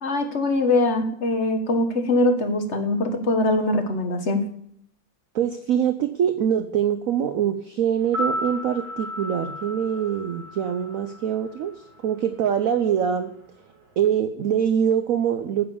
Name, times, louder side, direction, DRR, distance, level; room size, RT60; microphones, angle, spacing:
voice 1, 0.0-4.4, left 2 dB, 40° left, 5 dB, 1.5 m, -22 dB
voice 2, 5.3-13.3 14.0-15.7, right 9 dB, 65° right, 9 dB, 0.8 m, -24 dB
sound 1, 8.0-12.2 12.4-12.5, left 1 dB, 90° right, 3.5 m, -33 dB
9.6 x 7.8 x 7.0 m, 0.68 s
omnidirectional pair, 2.1 m